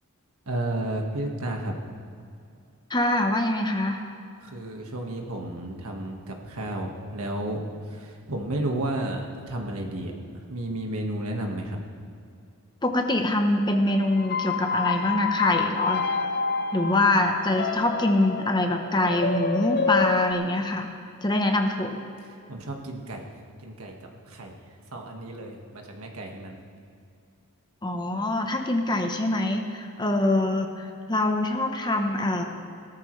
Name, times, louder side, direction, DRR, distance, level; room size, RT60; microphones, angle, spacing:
voice 1, 0.5-1.7 4.4-7.6 7.9-11.8 22.5-23.2 23.6-23.9 24.3-24.5 24.9-26.6, right 1 dB, 70° right, 1 dB, 1.7 m, -32 dB
voice 2, 2.9-4.0 12.8-16.0 16.7-20.9 21.2-22.0 27.8-32.4, left 1 dB, 20° left, 4 dB, 1.0 m, -24 dB
sound 1, 14.1-20.3, left 5 dB, 45° left, 0.5 m, -28 dB
17.5 x 13.5 x 3.3 m, 2.5 s
head